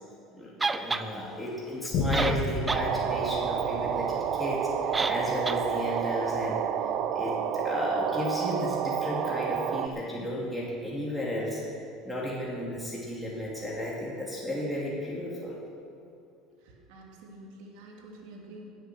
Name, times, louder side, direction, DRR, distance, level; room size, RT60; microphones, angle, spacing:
voice 1, 0.3-6.6 7.1-11.6 12.0-15.6, left 1 dB, ahead, -6 dB, 2.8 m, -34 dB
sound 1, 0.6-1.1 1.9-2.0 2.1-2.9 3.2-3.3 4.9-5.2 5.5-5.6, right 3 dB, 15° right, 0.6 m, -29 dB
Boom, 1.9-8.8 9.4-9.5, left 2 dB, 55° left, 2.1 m, -36 dB
sound 2, 2.7-9.9, right 8 dB, 55° right, 0.8 m, -30 dB
voice 2, 16.6-18.7, right 1 dB, 80° right, -1 dB, 2.9 m, -48 dB
17.0 x 8.1 x 6.3 m, 2.4 s
supercardioid pair, 115°, 0 cm